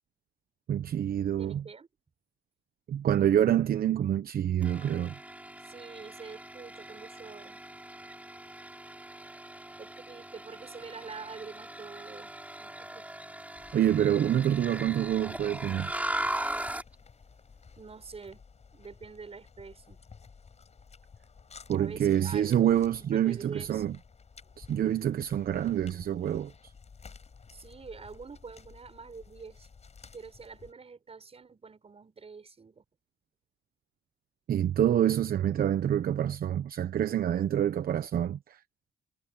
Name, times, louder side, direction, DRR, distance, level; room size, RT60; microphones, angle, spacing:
voice 1, 0.7-1.6 2.9-5.1 13.7-15.9 21.7-23.9 24.6-26.5 34.5-38.6, right 10 dB, 60° right, 0.9 m, -27 dB
voice 2, 1.4-1.9 5.6-7.6 9.8-12.3 12.6-13.1 17.8-18.4 18.7-20.0 21.7-22.6 23.0-23.9 27.5-29.7 30.1-32.8, right 5 dB, 35° right, 6.1 m, -46 dB
sound 1, 4.6-16.9, right 1 dB, 10° right, 6.7 m, -39 dB
sound 2, 13.5-30.7, left 5 dB, 40° left, 6.9 m, -54 dB
cardioid pair, 80°, 17 cm